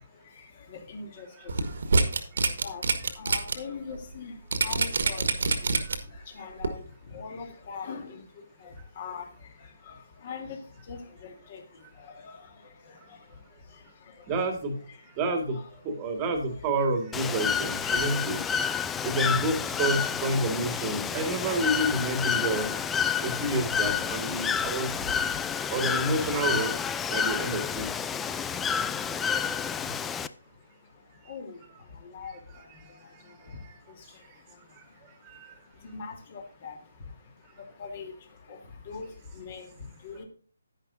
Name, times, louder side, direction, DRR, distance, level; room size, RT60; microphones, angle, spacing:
voice 1, 0.3-1.5 2.4-2.8 3.1-4.3 4.6-5.7 6.1-6.9 7.1-8.2 8.6-9.2 9.9-10.0 10.2-10.6 10.9-11.6 12.0-13.2 14.2-14.3 16.5-16.6 17.2-17.4 17.8-18.2 21.1-21.2 23.8-23.9 24.3-24.5 25.1-25.2 25.8-25.9 31.3-31.6 32.0-32.4 33.5-33.6 35.8-36.7 37.8-38.1 38.5-38.6 38.8-39.7 40.0-40.2, left 5 dB, 40° left, 3 dB, 3.1 m, -41 dB
voice 2, 1.3-1.7 3.0-3.1 5.8-5.9 14.3-14.8 15.2-18.4 19.0-22.7 23.2-24.9 25.7-26.7 27.1-27.9 32.5-32.9 33.3-33.4 35.3-35.5, right 2 dB, 20° right, 6 dB, 1.8 m, -29 dB
sound 1, 1.5-3.5 3.9-4.0 4.5-6.2 6.6-6.7, right 3 dB, 60° right, 1.6 m, -25 dB
Bird / Water, 17.1-30.3, left 7 dB, 10° left, 0.4 m, -29 dB
10.5 x 10.5 x 2.7 m, 0.41 s
figure-of-eight pair, 145°, 0 cm